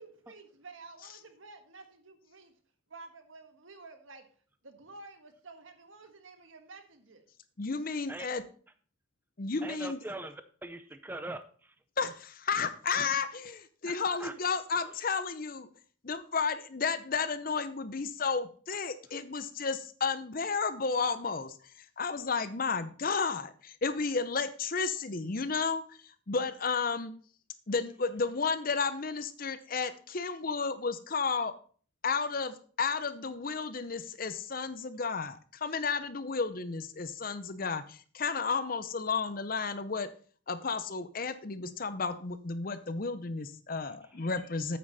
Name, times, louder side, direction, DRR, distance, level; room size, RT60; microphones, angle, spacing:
voice 1, 0.0-2.5 2.9-4.3 4.6-7.2, right 3 dB, 85° right, 6 dB, 1.6 m, -51 dB
voice 2, 7.6-8.4 9.4-10.0 12.0-15.7 16.0-21.5 22.0-26.0 26.3-27.1 27.7-31.5 32.0-40.1 40.5-44.8, left 5 dB, 45° left, 12 dB, 0.7 m, -32 dB
voice 3, 9.6-11.7 13.8-14.3 14.9-15.0 44.0-44.2, right 2 dB, 10° right, 10 dB, 0.5 m, -42 dB
8.7 x 8.6 x 4.1 m, 0.43 s
head